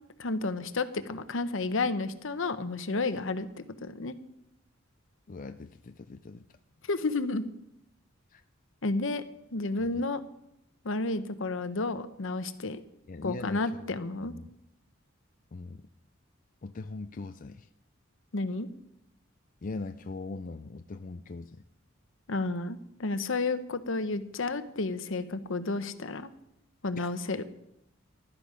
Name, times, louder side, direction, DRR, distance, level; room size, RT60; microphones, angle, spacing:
voice 1, 0.2-3.5 3.8-4.1 6.9-7.5 8.8-9.2 9.5-10.2 10.8-12.8 13.2-14.3 18.3-18.7 22.3-26.3 26.8-27.4, left 3 dB, 70° left, 11 dB, 0.9 m, -31 dB
voice 2, 5.3-6.6 8.3-8.4 9.9-10.0 13.1-14.0 14.2-14.5 15.5-15.8 16.6-17.7 19.6-21.6 27.0-27.1, left 3 dB, 40° left, 8 dB, 0.5 m, -40 dB
15.5 x 12.0 x 5.1 m, 0.83 s
head